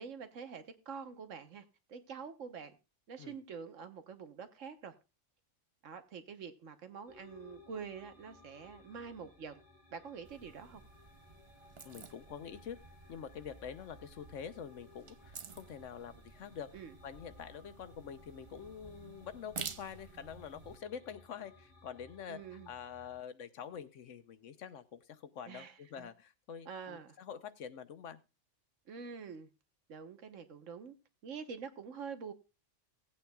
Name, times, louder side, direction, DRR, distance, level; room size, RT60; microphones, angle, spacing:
voice 1, 0.0-2.8 3.1-4.9 5.8-9.6 9.9-10.8 16.7-17.0 22.3-22.7 25.5-26.1 26.6-27.2 28.9-29.5 29.9-31.0 31.2-32.3, right 6 dB, 85° right, 1.4 m, -46 dB
sound 1, 7.1-23.2, left 3 dB, 25° left, 4.1 m, -61 dB
sound 2, 10.2-20.8, right 5 dB, 40° right, 0.4 m, -51 dB
voice 2, 11.8-12.8 13.1-16.7 17.0-28.2, left 8 dB, 80° left, 1.2 m, -46 dB
17.5 x 8.5 x 2.3 m
omnidirectional pair, 1.3 m